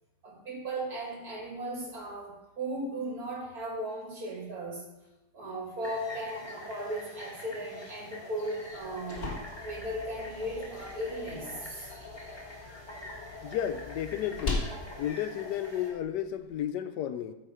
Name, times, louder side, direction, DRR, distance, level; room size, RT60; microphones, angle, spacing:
voice 1, 0.2-4.8 5.3-9.3 9.6-11.9, right 1 dB, 60° right, -3 dB, 3.0 m, -37 dB
sound 1, 5.8-15.9, left 1 dB, 15° left, 1.6 m, -45 dB
sound 2, 8.7-16.6, left 3 dB, 35° left, 1.8 m, -41 dB
voice 2, 13.4-14.7 15.0-17.3, left 10 dB, 80° left, 11 dB, 1.2 m, -33 dB
13.5 x 4.7 x 4.8 m, 1.0 s
omnidirectional pair, 1.8 m